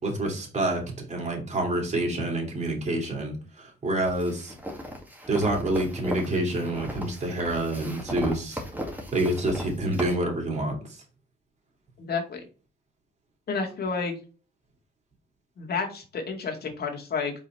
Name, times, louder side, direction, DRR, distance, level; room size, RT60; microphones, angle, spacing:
voice 1, 0.0-4.5 5.3-8.6 9.1-11.0, right 1 dB, 35° right, 0 dB, 2.9 m, -27 dB
sound 1, 4.0-10.1, equal, 10° right, 1.9 m, -37 dB
voice 2, 12.0-12.4 13.5-14.1 15.6-17.3, left 5 dB, 50° left, 1 dB, 2.2 m, -30 dB
5.1 x 4.5 x 4.4 m, 0.35 s
cardioid pair, 90°, 20 cm